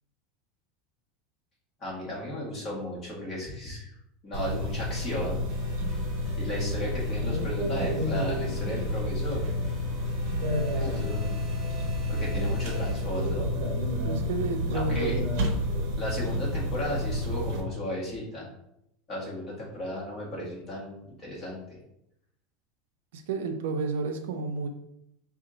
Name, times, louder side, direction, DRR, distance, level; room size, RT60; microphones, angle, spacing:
voice 1, 1.8-3.9 4.2-5.4 6.4-9.4 10.8-11.4 12.1-13.5 14.7-15.2 15.9-18.5 19.1-21.6, left 1 dB, 20° left, -5 dB, 1.6 m, -35 dB
sound 1, 4.3-17.6, left 1 dB, 50° right, 0.8 m, -29 dB
sound 2, 5.5-13.6, equal, 5° right, 1.2 m, -49 dB
voice 2, 14.0-15.2 23.1-24.7, right 4 dB, 75° right, 6 dB, 0.6 m, -31 dB
5.1 x 2.5 x 3.8 m, 0.77 s
supercardioid pair, 175°, 0 cm